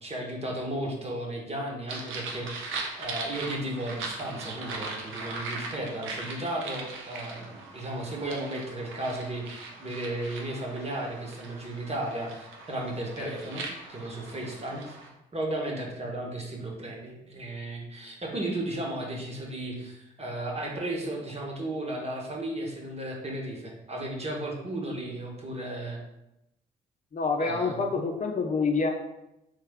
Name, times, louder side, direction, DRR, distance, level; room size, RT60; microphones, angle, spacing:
voice 1, 0.0-15.0 15.3-26.0 27.4-27.9, right 1 dB, 30° right, -1 dB, 1.2 m, -34 dB
sound 1, 1.9-15.1, right 3 dB, 70° right, 0.8 m, -40 dB
voice 2, 27.1-28.9, left 4 dB, 35° left, 2 dB, 0.6 m, -27 dB
3.4 x 3.3 x 3.5 m, 0.86 s
hypercardioid pair, 45°, 21 cm